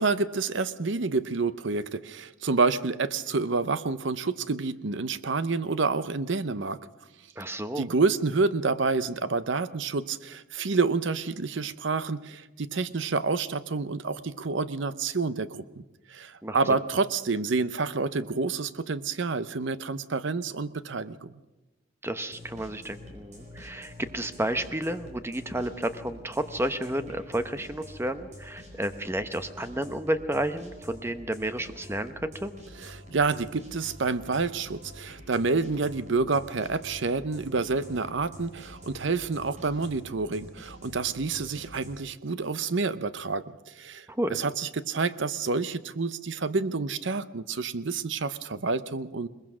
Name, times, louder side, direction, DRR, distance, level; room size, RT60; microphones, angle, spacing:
voice 1, 0.0-6.8 7.4-15.8 16.1-21.3 32.8-44.1 44.3-49.3, right 4 dB, 60° right, 15 dB, 0.7 m, -28 dB
voice 2, 7.4-7.9 16.4-16.6 22.0-32.5 44.1-44.4, right 1 dB, 10° right, 10 dB, 0.8 m, -31 dB
sound 1, 22.2-42.0, equal, 35° right, 4.7 m, -47 dB
21.5 x 20.5 x 6.2 m, 1.1 s
head